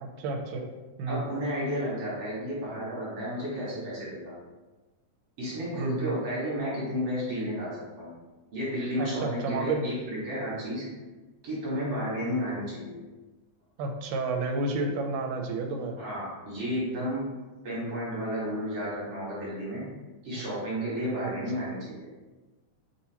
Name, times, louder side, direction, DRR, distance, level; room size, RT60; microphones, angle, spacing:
voice 1, 0.2-0.7 1.0-1.2 5.8-6.2 9.0-9.8 13.8-16.0 20.3-20.4, right 3 dB, 85° right, 4 dB, 2.1 m, -31 dB
voice 2, 1.1-4.3 5.4-8.1 8.5-10.9 11.4-13.0 16.0-17.3 17.6-19.9 20.2-22.1, equal, 55° right, -8 dB, 2.1 m, -32 dB
5.9 x 2.8 x 2.8 m, 1.2 s
omnidirectional pair, 3.6 m